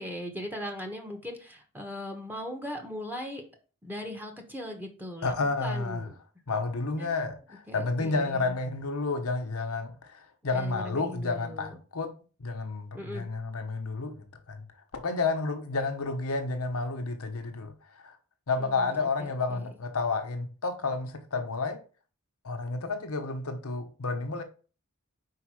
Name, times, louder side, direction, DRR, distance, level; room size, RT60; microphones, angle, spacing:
voice 1, 0.0-3.4 3.8-5.3 5.6-6.2 7.0-7.1 7.7-8.5 10.5-11.8 12.9-13.3 18.6-19.7, left 1 dB, 10° right, 1.1 m, -39 dB
voice 2, 5.2-6.1 6.5-12.1 12.4-14.7 14.9-18.2 18.5-21.8 22.4-24.4, left 3 dB, 70° left, 1.0 m, -31 dB
4.9 x 4.7 x 4.8 m
head